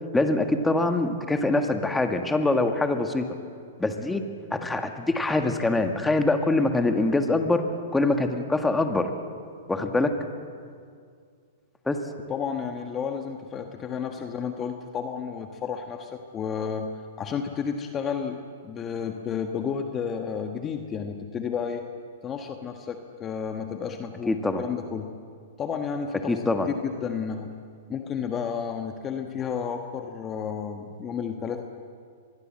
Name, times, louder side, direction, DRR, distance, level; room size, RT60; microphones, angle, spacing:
voice 1, 0.1-3.2 3.8-4.2 4.5-7.6 7.9-9.1 9.7-10.1 11.9-12.0 24.3-24.6 26.3-26.7, left 2 dB, 5° left, 6 dB, 1.9 m, -24 dB
voice 2, 12.3-16.9 17.2-21.9 22.2-25.1 25.6-26.4 26.8-27.5 27.9-31.6, left 7 dB, 25° left, 5 dB, 1.5 m, -32 dB
24.5 x 21.0 x 7.8 m, 2.2 s
hypercardioid pair, 130°, 0 cm